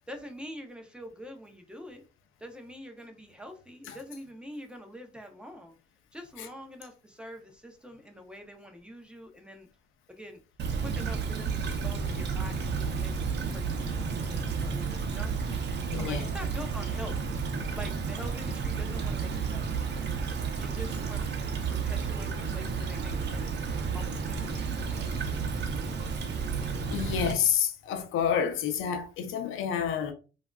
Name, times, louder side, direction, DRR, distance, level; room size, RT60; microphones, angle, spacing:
voice 1, 0.1-2.0 2.4-5.8 6.1-9.7 10.1-10.4 10.8-15.7 16.0-17.2 17.7-19.6 20.6-23.6 23.9-25.0, equal, 5° right, 0.7 m, -45 dB
Stream / Trickle dribble, 10.6-27.3, right 5 dB, 60° right, 0.7 m, -31 dB
voice 2, 15.9-16.3 26.9-30.1, left 8 dB, 85° left, 0.5 m, -29 dB
3.4 x 2.5 x 2.3 m
cardioid pair, 90°, 20 cm